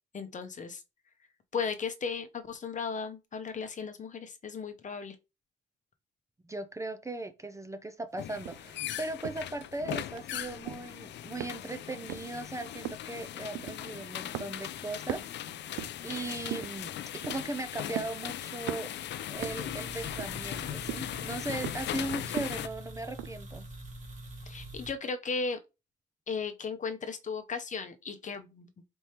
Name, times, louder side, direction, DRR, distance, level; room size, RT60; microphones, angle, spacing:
voice 1, 0.1-0.8 1.5-5.2 24.5-25.6 26.3-28.7, left 5 dB, 40° left, 0.8 m, -36 dB
voice 2, 6.4-15.2 15.6-15.7 16.0-16.9 17.2-18.9 19.3-23.7, right 2 dB, 15° right, 0.5 m, -38 dB
sound 1, 8.2-22.7, left 11 dB, 60° left, 0.4 m, -39 dB
sound 2, 8.4-8.7 9.2-9.5 9.9-10.3 10.6-11.0 11.4-11.8 12.1-12.4 12.8-13.2 13.5-14.0 14.3-14.8 15.0-16.1 16.5-16.8 17.2-17.5 18.0-18.3 18.7-19.0 19.4-19.7 20.2-20.6 20.9-21.1 21.6-22.0 22.4-22.7 23.2-23.3, right 12 dB, 75° right, 0.4 m, -39 dB
sound 3, 19.3-24.9, right 1 dB, 40° right, 1.4 m, -45 dB
4.4 x 3.2 x 2.9 m
cardioid pair, 90°, 20 cm